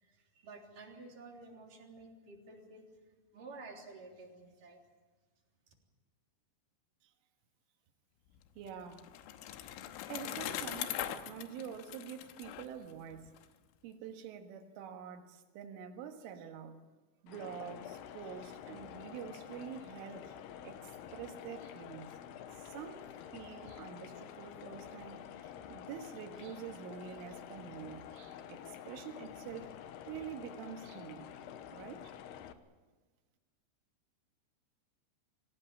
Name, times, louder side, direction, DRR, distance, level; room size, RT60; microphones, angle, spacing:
voice 1, 0.0-2.9 3.3-4.8, right 3 dB, 45° right, 0 dB, 4.7 m, -52 dB
Bicycle, 8.4-13.5, left 12 dB, 90° left, 3.5 m, -41 dB
voice 2, 8.6-9.1 9.5-9.8 10.1-13.3 13.8-16.8 17.2-22.2 22.6-29.7 30.1-31.3 31.7-32.1, right 8 dB, 80° right, 5 dB, 4.1 m, -47 dB
sound 1, 17.3-32.5, left 10 dB, 75° left, 2.6 m, -49 dB
25.5 x 17.0 x 8.9 m, 1.3 s
omnidirectional pair, 5.7 m